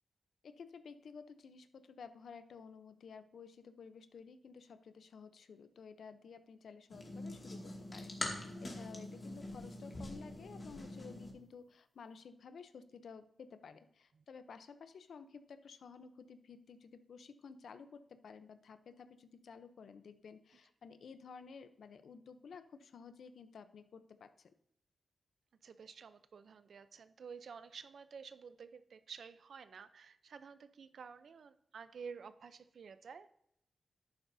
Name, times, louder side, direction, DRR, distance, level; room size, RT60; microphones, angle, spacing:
voice 1, 0.4-24.5, left 5 dB, 75° left, 11 dB, 0.7 m, -53 dB
sound 1, 6.9-11.3, left 1 dB, 30° left, 2.2 m, -44 dB
voice 2, 25.6-33.3, right 6 dB, 70° right, 13 dB, 0.6 m, -51 dB
11.0 x 9.5 x 2.7 m, 0.77 s
wide cardioid pair, 100°, 0 cm